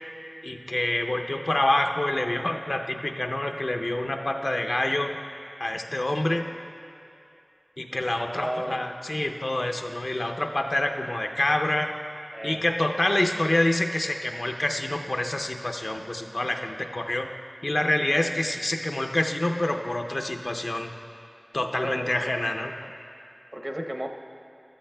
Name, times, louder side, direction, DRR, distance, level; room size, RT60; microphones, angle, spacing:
voice 1, 0.4-5.1 5.6-6.5 7.8-12.0 12.4-17.3 17.6-20.9 21.5-22.7, left 1 dB, 65° left, 4 dB, 0.5 m, -27 dB
voice 2, 8.3-8.8 12.3-12.6 21.8-22.3 22.7-22.9 23.5-24.1, equal, 30° right, 3 dB, 0.7 m, -33 dB
14.5 x 12.5 x 2.2 m, 2.8 s
wide cardioid pair, 50°, 0 cm